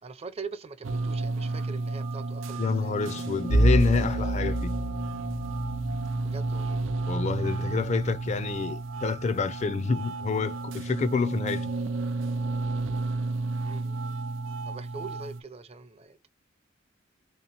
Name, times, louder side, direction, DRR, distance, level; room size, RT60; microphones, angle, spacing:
voice 1, 0.0-3.0 6.2-6.8 13.6-14.1 14.6-16.3, right 4 dB, 30° right, 0.5 m, -43 dB
sound 1, 0.8-15.4, right 3 dB, 90° right, 0.5 m, -32 dB
voice 2, 2.6-4.7 7.1-11.7, left 4 dB, 35° left, 0.4 m, -28 dB
Bowed string instrument, 3.5-8.6, right 1 dB, 80° left, 0.8 m, -29 dB
3.7 x 2.8 x 2.9 m
head